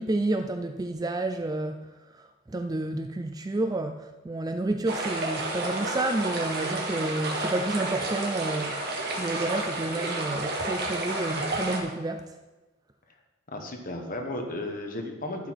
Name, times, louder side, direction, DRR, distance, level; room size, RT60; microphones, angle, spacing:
voice 1, 0.0-1.8 2.2-8.8 9.2-12.3, right 2 dB, 15° right, 7 dB, 0.3 m, -30 dB
sound 1, 4.9-11.8, right 2 dB, 45° right, 1.7 m, -31 dB
voice 2, 13.5-15.5, left 1 dB, 40° left, 3 dB, 1.3 m, -34 dB
11.5 x 8.0 x 4.7 m, 1.2 s
head